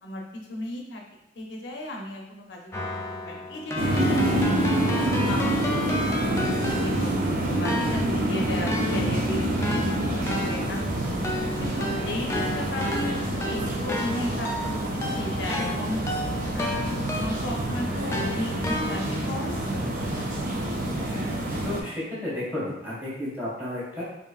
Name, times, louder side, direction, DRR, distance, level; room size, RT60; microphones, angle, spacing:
voice 1, 0.5-1.0 1.4-3.0 3.2-4.9 5.3-9.8 10.1-11.2 11.6-16.7 17.2-20.3, left 1 dB, 80° left, 0 dB, 0.6 m, -35 dB
Keyboard (musical), 2.7-7.2 7.6-17.6 18.1-19.3, left 1 dB, 15° left, 0.3 m, -33 dB
sound 1, 3.8-21.8, right 1 dB, 45° right, 0.5 m, -27 dB
voice 2, 21.6-24.0, left 1 dB, 10° right, -8 dB, 1.5 m, -33 dB
4.8 x 2.7 x 2.4 m, 0.84 s
head